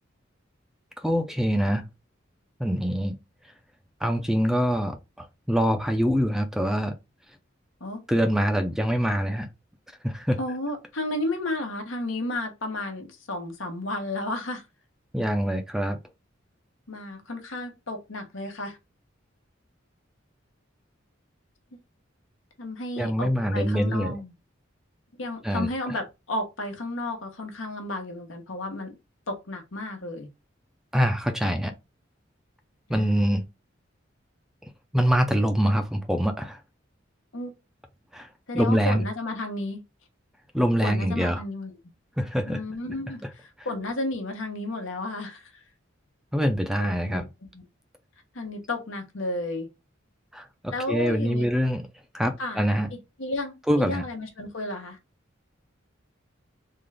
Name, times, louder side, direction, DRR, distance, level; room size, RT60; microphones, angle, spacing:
voice 1, 1.0-1.8 2.6-3.2 4.0-7.0 8.1-9.5 10.0-10.4 15.1-16.0 23.0-24.2 25.4-25.7 30.9-31.7 32.9-33.4 34.9-36.6 38.1-38.3 38.5-39.0 40.5-41.4 42.2-42.6 46.3-47.3 50.3-51.8 52.1-52.9 53.7-54.0, equal, ahead, 0.4 m, -24 dB
voice 2, 10.4-14.6 16.9-18.8 22.6-24.3 25.2-29.0 29.3-30.3 32.9-33.1 37.3-37.5 38.5-39.8 40.8-41.7 42.5-45.6 46.8-47.3 47.5-47.6 48.3-49.7 50.7-51.5 52.4-52.6 52.9-55.0, left 2 dB, 85° left, 1.1 m, -32 dB
3.7 x 2.4 x 3.2 m
head